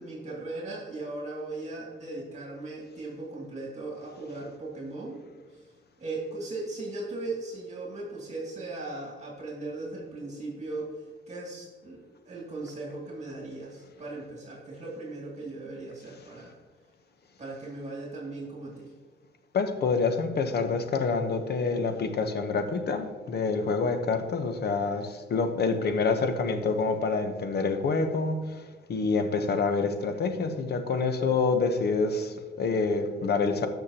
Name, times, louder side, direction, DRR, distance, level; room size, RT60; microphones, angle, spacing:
voice 1, 0.0-5.2 5.5-5.6 6.0-16.5 17.4-18.9, right 2 dB, 35° right, -3 dB, 2.5 m, -38 dB
voice 2, 19.5-28.6 28.9-33.7, left 4 dB, 55° left, 8 dB, 1.0 m, -27 dB
13.5 x 5.9 x 2.9 m, 1.4 s
cardioid pair, 90°, 20 cm